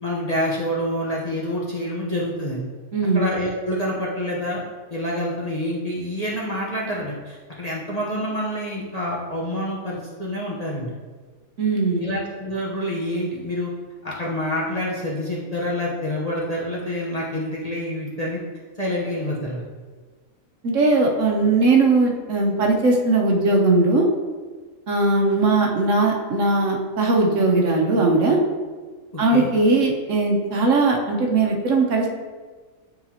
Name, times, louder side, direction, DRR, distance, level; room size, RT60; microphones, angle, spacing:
voice 1, 0.0-2.6 3.1-4.6 4.9-10.9 12.0-13.7 14.0-18.4 18.8-19.6 29.1-29.5, equal, 30° left, -5 dB, 1.0 m, -27 dB
voice 2, 2.9-3.2 11.6-12.0 20.6-24.1 24.9-28.4 29.2-32.1, right 3 dB, 65° right, 0 dB, 1.1 m, -19 dB
9.5 x 3.9 x 2.9 m, 1.4 s
omnidirectional pair, 1.5 m